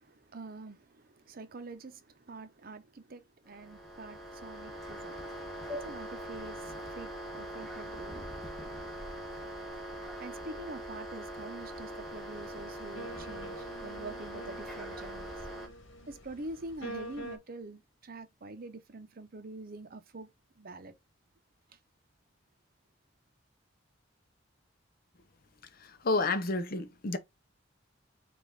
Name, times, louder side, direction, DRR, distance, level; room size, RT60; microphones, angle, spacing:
voice 1, 0.0-5.2 5.7-8.3 10.2-15.3 16.1-20.3 20.6-20.9 21.7-21.8, right 2 dB, 50° right, 0.7 m, -46 dB
sound 1, 3.5-15.7, right 1 dB, ahead, 1.3 m, -42 dB
sound 2, 12.3-17.4, right 1 dB, 75° left, 1.2 m, -46 dB
voice 2, 25.8-27.2, left 3 dB, 50° left, 0.7 m, -30 dB
5.1 x 2.5 x 3.8 m
head